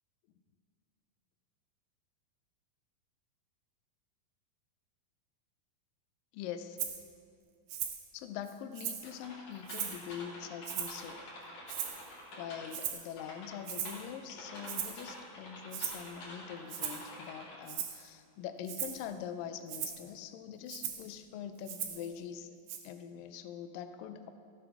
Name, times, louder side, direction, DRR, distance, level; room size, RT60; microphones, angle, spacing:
voice 1, 6.3-6.8 8.1-11.2 12.4-22.5 22.8-24.3, left 8 dB, 80° left, 9 dB, 2.2 m, -43 dB
Rattle (instrument), 6.8-7.0 7.7-8.0 8.5-9.1 9.7-10.1 10.6-11.1 11.7-12.1 12.7-13.1 13.7-14.0 14.7-15.0 15.7-16.0 16.7-17.1 17.7-18.0 18.7-19.0 19.7-20.0 20.7-21.1 21.7-22.1 22.7-22.8, right 9 dB, 70° right, 2.4 m, -38 dB
sound 1, 9.0-12.8 13.2-17.5, left 1 dB, 50° left, 3.7 m, -48 dB
15.0 x 7.9 x 6.0 m, 2.4 s
omnidirectional pair, 4.3 m